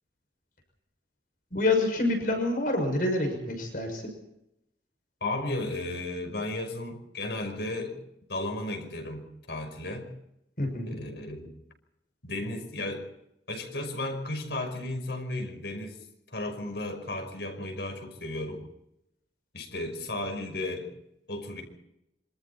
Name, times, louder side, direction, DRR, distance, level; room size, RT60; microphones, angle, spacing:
voice 1, 1.5-4.0 10.6-11.0, left 2 dB, 50° left, 4 dB, 6.3 m, -27 dB
voice 2, 5.2-8.0 8.3-10.1 10.9-11.5 12.2-13.1 13.5-16.0 16.3-18.6 19.5-20.9 21.3-21.6, left 2 dB, 75° left, 5 dB, 5.7 m, -34 dB
27.0 x 25.5 x 4.3 m, 0.82 s
head